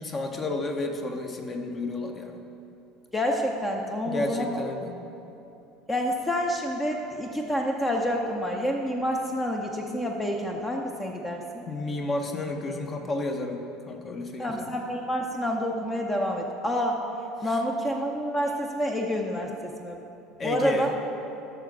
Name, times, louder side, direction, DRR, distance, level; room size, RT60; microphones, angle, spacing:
voice 1, 0.0-2.4 4.1-5.0 11.7-13.6 13.9-14.7 17.4-17.6 20.4-20.9, left 2 dB, 30° left, 4 dB, 1.0 m, -31 dB
voice 2, 3.1-4.6 5.9-11.6 14.4-17.0 17.4-20.0 20.4-20.9, equal, 15° left, 1 dB, 0.7 m, -28 dB
13.5 x 6.6 x 3.8 m, 2.9 s
figure-of-eight pair, 65°, 0 cm